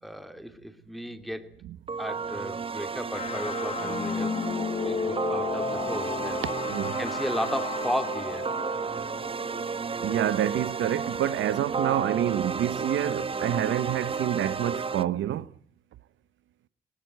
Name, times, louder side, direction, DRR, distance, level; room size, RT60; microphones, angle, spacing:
voice 1, 0.0-1.5 2.0-4.4 4.8-6.5 7.0-8.5, equal, ahead, 2.8 m, -34 dB
sound 1, 1.9-15.0, right 5 dB, 30° right, 0.8 m, -32 dB
sound 2, 3.1-10.0, left 6 dB, 35° left, 0.8 m, -33 dB
voice 2, 10.0-15.5, right 12 dB, 75° right, 0.8 m, -27 dB
19.5 x 17.5 x 9.1 m
cardioid pair, 90°, 20 cm